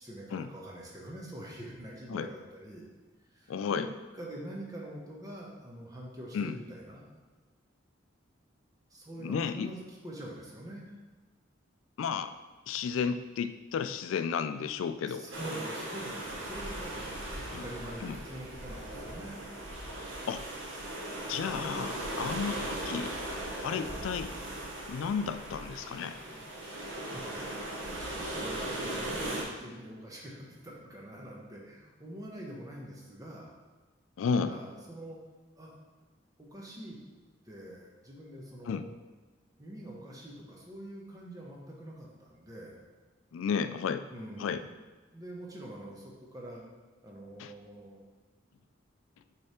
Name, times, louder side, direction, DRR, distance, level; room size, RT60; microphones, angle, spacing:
voice 1, 0.0-2.9 3.3-3.8 4.1-7.0 8.9-10.9 15.0-17.1 17.5-19.4 22.1-22.7 23.6-23.9 26.1-33.5 34.4-35.2 35.6-35.7 36.4-37.0 37.4-38.9 39.6-42.8 44.1-44.8 45.1-46.6 47.0-48.0, right 1 dB, 20° right, -3 dB, 1.1 m, -45 dB
voice 2, 3.5-3.9 6.3-6.6 9.2-9.7 12.0-12.3 12.7-15.3 17.5-17.6 18.0-18.2 20.3-20.4 21.3-23.1 23.6-24.3 24.9-26.2 34.2-34.5 38.7-38.8 43.3-44.1 44.4-44.6 47.4-47.5, left 6 dB, 90° left, 11 dB, 0.3 m, -32 dB
sound 1, 15.3-29.4, right 1 dB, 85° right, 1.2 m, -38 dB
6.6 x 3.4 x 4.3 m, 1.3 s
head